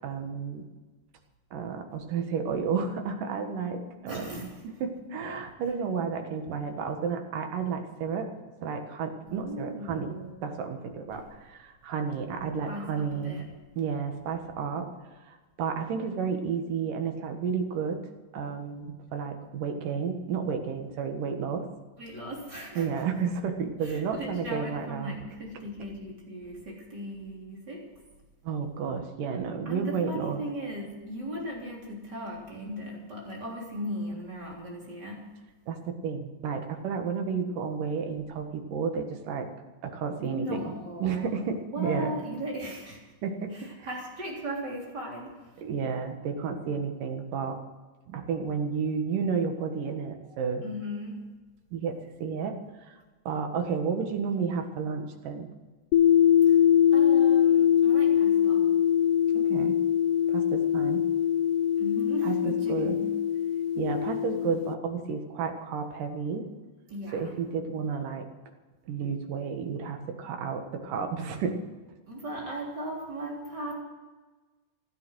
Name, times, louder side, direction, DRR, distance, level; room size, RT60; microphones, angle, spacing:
voice 1, 0.0-0.7 1.5-8.3 8.6-13.4 13.8-18.0 18.3-21.6 22.7-25.2 28.4-30.4 35.7-39.5 39.8-40.7 41.0-42.1 43.2-43.9 45.6-47.6 48.1-50.6 51.7-53.0 53.3-55.5 59.3-59.8 60.3-61.0 62.2-63.0 63.8-66.5 67.1-68.3 68.9-71.6, right 6 dB, 85° right, 5 dB, 3.2 m, -32 dB
voice 2, 4.1-4.5 9.3-10.4 12.7-13.4 22.0-23.0 23.8-27.8 29.7-35.3 40.2-41.3 41.7-43.0 43.5-45.6 50.6-51.2 56.5-56.6 56.9-58.7 61.8-63.1 66.9-67.4 72.1-73.7, equal, 30° right, -2 dB, 3.9 m, -37 dB
sound 1, 55.9-64.8, left 9 dB, 85° left, 2.3 m, -23 dB
15.5 x 12.5 x 6.3 m, 1.3 s
omnidirectional pair, 3.7 m